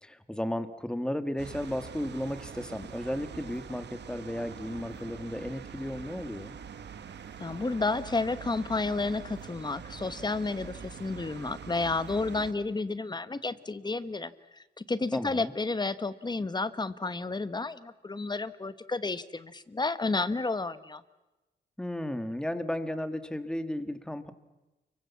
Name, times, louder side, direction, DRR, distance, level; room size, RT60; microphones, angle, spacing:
voice 1, 0.0-6.5 15.1-15.5 21.8-24.3, left 1 dB, 5° left, 10 dB, 1.9 m, -34 dB
sound 1, 1.4-12.5, right 7 dB, 75° right, 1.7 m, -44 dB
voice 2, 7.4-21.0, left 3 dB, 25° left, 14 dB, 1.2 m, -31 dB
29.5 x 23.5 x 7.3 m, 1.1 s
wide cardioid pair, 110°, 18 cm